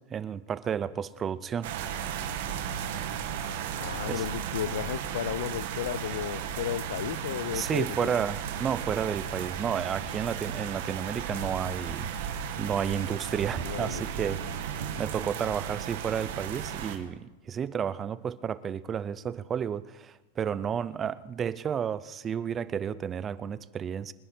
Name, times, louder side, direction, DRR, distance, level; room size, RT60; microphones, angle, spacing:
voice 1, 0.1-1.7 4.0-4.2 7.5-24.1, right 8 dB, 15° right, 0.4 m, -32 dB
sound 1, 1.6-17.0, right 8 dB, 60° right, 2.0 m, -35 dB
voice 2, 3.8-8.1 13.6-14.0, left 11 dB, 70° left, 0.5 m, -34 dB
24.5 x 10.0 x 4.4 m
supercardioid pair, 170°, 0 cm